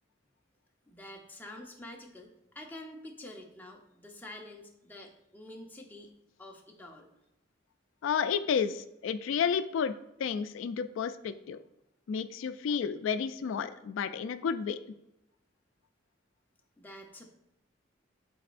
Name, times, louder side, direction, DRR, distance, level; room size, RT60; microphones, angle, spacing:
voice 1, 0.9-6.1 6.4-7.1 16.8-17.3, left 1 dB, 10° left, 0 dB, 0.8 m, -47 dB
voice 2, 8.0-9.9 10.2-11.6 12.1-14.8, left 7 dB, 85° left, 11 dB, 0.3 m, -31 dB
11.5 x 4.1 x 2.5 m, 0.85 s
head